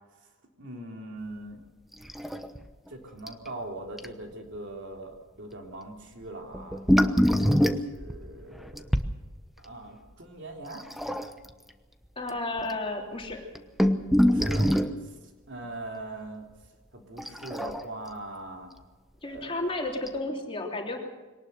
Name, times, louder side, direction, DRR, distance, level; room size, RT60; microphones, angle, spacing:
voice 1, 0.6-1.6 2.9-8.8 9.6-10.9 14.2-14.7 15.0-15.2 15.5-16.5 16.9-18.7 19.3-19.5, right 2 dB, 55° right, 2 dB, 3.4 m, -41 dB
sound 1, 2.0-2.6 2.9-3.0 3.3-3.5 4.0-4.1 6.5-9.1 10.8-11.5 12.3-12.4 12.6-12.7 13.3-15.0 17.2-18.1 19.4-19.5 20.1-20.2, equal, ahead, 1.0 m, -24 dB
voice 2, 12.1-13.5 19.2-21.1, left 2 dB, 25° left, 1 dB, 3.2 m, -32 dB
23.0 x 19.0 x 6.8 m, 1.2 s
head